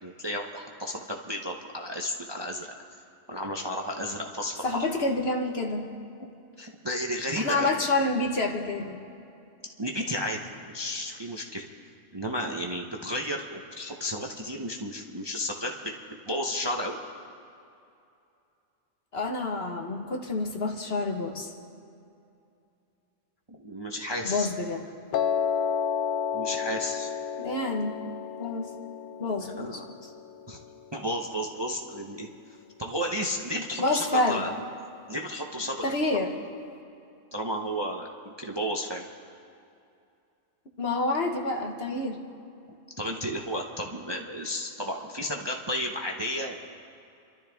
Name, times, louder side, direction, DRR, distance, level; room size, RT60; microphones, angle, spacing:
voice 1, 0.0-2.7 3.3-4.8 6.2-6.3 6.6-7.7 9.8-11.6 12.1-15.9 16.3-17.0 23.6-24.5 26.3-27.1 29.6-29.9 30.5-30.6 30.9-32.3 32.8-34.5 35.1-35.8 37.3-39.0 43.0-46.6, equal, 25° right, 1 dB, 0.8 m, -32 dB
voice 2, 4.6-5.9 7.4-9.0 19.1-21.5 24.2-24.9 27.4-28.0 28.4-28.7 29.2-30.1 33.8-34.4 35.8-36.3 40.8-42.2, left 2 dB, 50° left, 2 dB, 1.6 m, -28 dB
Piano, 25.1-31.3, left 7 dB, 80° left, 1.0 m, -31 dB
29.0 x 12.5 x 3.5 m, 2.6 s
omnidirectional pair, 1.4 m